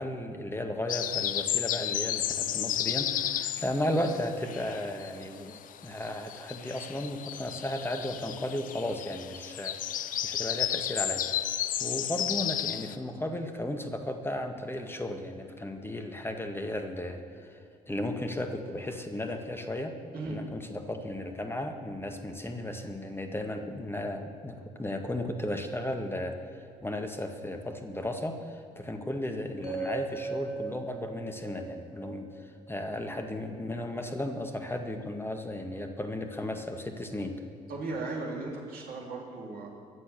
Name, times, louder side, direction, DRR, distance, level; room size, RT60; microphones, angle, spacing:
voice 1, 0.0-11.2 11.8-17.6 17.9-20.0 20.2-26.4 26.8-32.3 32.7-37.4, left 1 dB, 10° left, 5 dB, 1.9 m, -35 dB
sound 1, 0.9-5.2 5.5-13.0, left 11 dB, 45° left, 0.6 m, -33 dB
sound 2, 29.6-33.7, right 3 dB, 85° left, 4.3 m, -39 dB
voice 2, 37.7-39.7, right 3 dB, 50° right, -2 dB, 3.4 m, -36 dB
23.0 x 7.7 x 7.0 m, 2.4 s
figure-of-eight pair, 45°, 19 cm